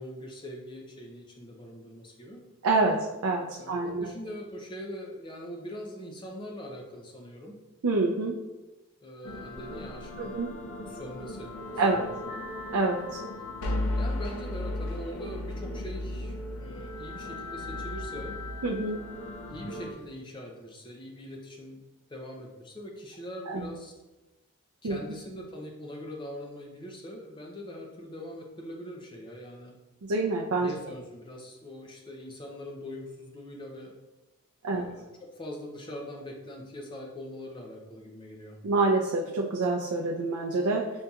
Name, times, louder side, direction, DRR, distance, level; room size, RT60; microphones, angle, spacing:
voice 1, 0.0-2.4 3.6-7.6 9.0-10.4 10.9-12.5 13.7-18.4 19.5-21.8 22.1-23.9 24.8-29.7 30.6-33.9 34.7-38.6, equal, 20° left, 1 dB, 0.5 m, -42 dB
voice 2, 2.6-4.1 7.8-8.3 10.2-10.5 11.8-12.1 12.7-13.2 18.6-19.0 23.5-23.7 24.8-25.0 30.1-30.7 34.6-34.9 38.6-40.9, right 3 dB, 75° right, -1 dB, 0.4 m, -27 dB
sound 1, 9.2-19.9, left 1 dB, 80° left, 0.5 m, -36 dB
5.2 x 2.8 x 2.3 m, 1.1 s
head